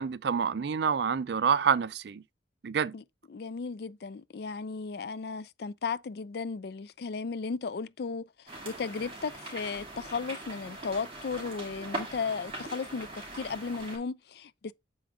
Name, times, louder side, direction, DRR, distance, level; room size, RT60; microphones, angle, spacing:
voice 1, 0.0-2.2 2.6-2.9, right 6 dB, 60° right, 0.4 m, -27 dB
voice 2, 3.3-13.1 13.3-14.7, left 5 dB, 55° left, 0.4 m, -35 dB
sound 1, 8.5-14.0, right 2 dB, 30° right, 3.1 m, -41 dB
7.0 x 5.0 x 3.7 m
head